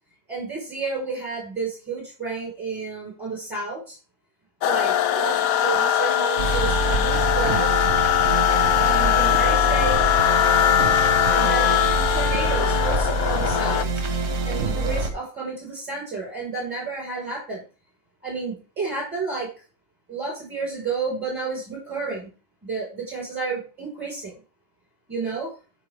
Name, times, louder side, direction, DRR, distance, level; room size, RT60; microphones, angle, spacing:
voice 1, 0.3-4.0 4.6-7.7 8.8-10.2 11.3-13.9 14.4-17.6 18.2-19.5 20.1-22.3 22.6-24.3 25.1-25.5, right 4 dB, 5° right, -3 dB, 4.7 m, -31 dB
sound 1, 4.6-13.8, left 11 dB, 85° left, 1.0 m, -21 dB
sound 2, 6.4-15.1, right 3 dB, 55° right, 1.5 m, -25 dB
13.0 x 5.2 x 3.6 m, 0.35 s
omnidirectional pair, 1.4 m